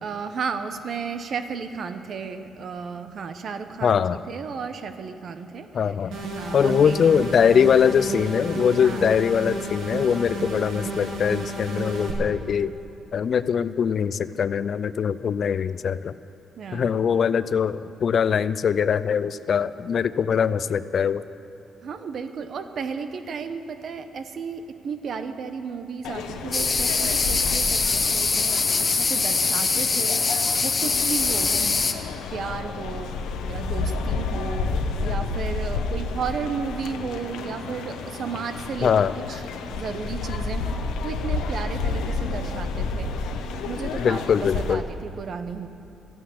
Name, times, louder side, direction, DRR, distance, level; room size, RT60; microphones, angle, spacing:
voice 1, 0.0-5.9 6.3-7.1 8.8-9.2 16.6-16.9 21.8-31.9 32.3-33.2 33.5-39.4 39.7-45.7, right 6 dB, 60° right, 9 dB, 0.9 m, -34 dB
voice 2, 3.8-4.2 5.7-6.2 6.5-12.7 13.1-16.1 16.7-21.2 38.8-39.1 44.0-44.8, left 7 dB, 55° left, 15 dB, 0.4 m, -22 dB
sound 1, 6.1-12.1, right 2 dB, 85° right, 2.2 m, -32 dB
sound 2, 26.0-44.7, left 4 dB, 90° left, 1.0 m, -30 dB
sound 3, 26.5-31.9, left 4 dB, 35° left, 0.9 m, -23 dB
13.5 x 9.3 x 8.5 m, 2.8 s
cardioid pair, 90°, 0 cm